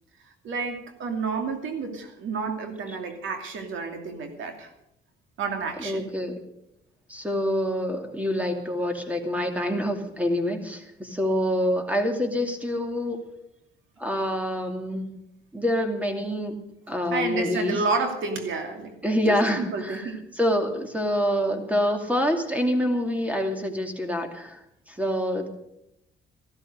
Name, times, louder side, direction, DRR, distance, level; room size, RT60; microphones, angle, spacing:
voice 1, 0.4-4.7 5.4-6.0 17.1-19.0 19.6-20.2, right 4 dB, 75° right, 5 dB, 2.7 m, -30 dB
voice 2, 5.8-6.4 7.1-13.2 14.0-15.2 15.5-17.8 19.0-25.5, equal, 5° right, 5 dB, 2.5 m, -26 dB
14.0 x 13.0 x 6.5 m, 0.80 s
cardioid pair, 90°, 20 cm